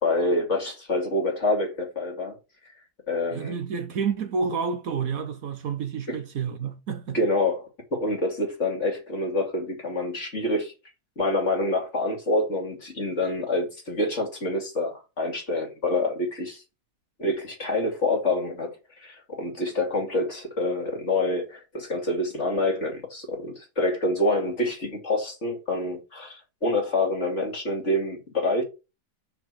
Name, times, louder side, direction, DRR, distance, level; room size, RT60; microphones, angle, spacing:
voice 1, 0.0-2.4 3.1-3.6 6.1-6.2 7.1-10.7 11.2-16.6 17.2-28.6, left 2 dB, 45° left, 2.8 m, -27 dB
voice 2, 3.3-7.2, right 6 dB, 60° right, 1.2 m, -29 dB
6.0 x 4.8 x 6.2 m
omnidirectional pair, 1.8 m